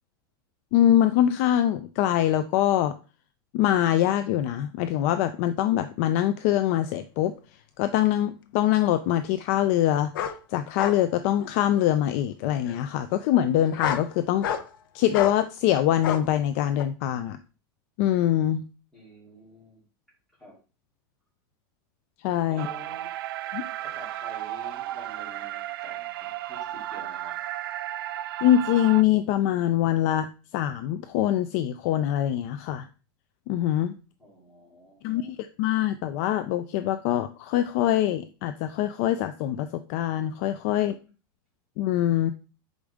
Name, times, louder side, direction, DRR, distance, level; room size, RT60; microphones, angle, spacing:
voice 1, 0.7-2.9 3.5-7.3 7.8-10.1 10.5-14.5 14.9-17.4 18.0-18.6 22.2-22.7 23.5-23.7 28.4-30.3 30.5-32.9 33.5-33.9 35.0-41.0 41.8-42.3, left 12 dB, 40° left, 10 dB, 0.4 m, -24 dB
sound 1, 8.1-8.2 10.1-10.4 10.8-11.0 11.4-11.9 12.7-12.8 13.6-14.1 14.4-14.8 15.1-15.4 16.0-16.2 16.8-16.9, left 9 dB, 70° left, 0.8 m, -30 dB
voice 2, 18.9-19.8 20.4-20.5 22.5-23.1 23.8-27.4 34.2-35.3, equal, ahead, -6 dB, 2.5 m, -48 dB
sound 2, 22.6-29.0, right 13 dB, 80° right, 0.4 m, -34 dB
6.2 x 5.0 x 3.5 m, 0.34 s
supercardioid pair, 170°, 12 cm